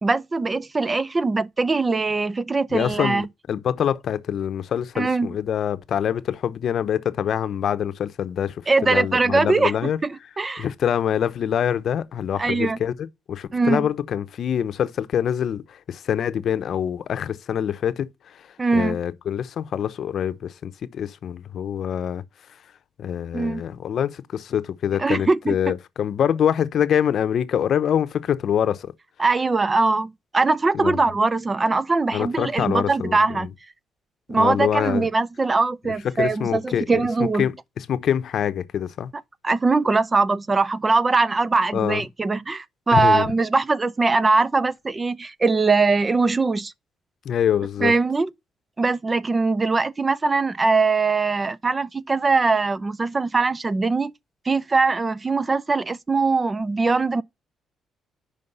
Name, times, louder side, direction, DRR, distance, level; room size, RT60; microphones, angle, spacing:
voice 1, 0.0-3.3 5.0-5.3 8.7-9.7 10.0-10.7 12.4-12.8 13.5-13.9 18.6-19.0 23.3-23.6 25.0-25.6 29.2-33.5 34.3-37.5 39.4-46.7 47.8-48.3 48.8-54.1 54.5-57.2, right 3 dB, 25° right, 0.4 m, -21 dB
voice 2, 2.7-10.0 10.6-12.9 13.3-22.2 23.0-28.9 30.7-31.0 32.1-33.5 34.3-35.1 35.8-37.1 37.4-39.1 41.7-42.0 42.9-43.2 47.2-47.9, left 9 dB, 65° left, 0.7 m, -25 dB
5.4 x 5.2 x 6.6 m
cardioid pair, 90°, 0 cm